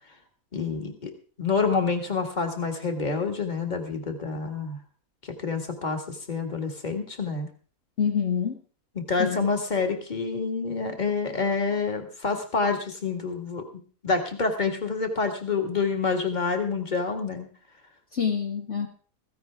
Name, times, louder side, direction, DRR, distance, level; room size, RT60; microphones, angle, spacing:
voice 1, 0.5-1.1 1.4-4.8 5.2-7.5 9.0-17.5, left 4 dB, 30° left, 4 dB, 2.0 m, -28 dB
voice 2, 8.0-8.6 9.2-9.5 18.1-18.9, left 7 dB, 55° left, 0 dB, 1.6 m, -26 dB
15.5 x 15.0 x 3.5 m, 0.40 s
omnidirectional pair, 1.5 m